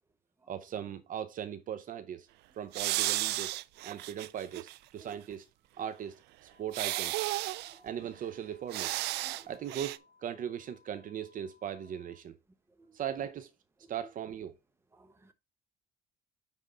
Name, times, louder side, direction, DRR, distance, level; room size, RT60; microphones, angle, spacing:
voice 1, 0.5-2.3 2.6-3.5 3.8-5.5 5.8-6.2 6.6-7.2 7.8-9.0 9.5-12.4 12.9-13.5 13.9-14.6, right 9 dB, 50° right, 0.7 m, -39 dB
sound 1, 2.7-4.8 5.1-5.2 6.7-7.8 8.7-9.4 9.7-10.0, right 17 dB, 85° right, 0.4 m, -33 dB
sound 2, 6.5-12.2, left 4 dB, 30° left, 4.5 m, -65 dB
voice 2, 15.0-15.3, right 3 dB, 15° right, 1.0 m, -57 dB
9.1 x 3.6 x 3.8 m
cardioid pair, 110°, 17 cm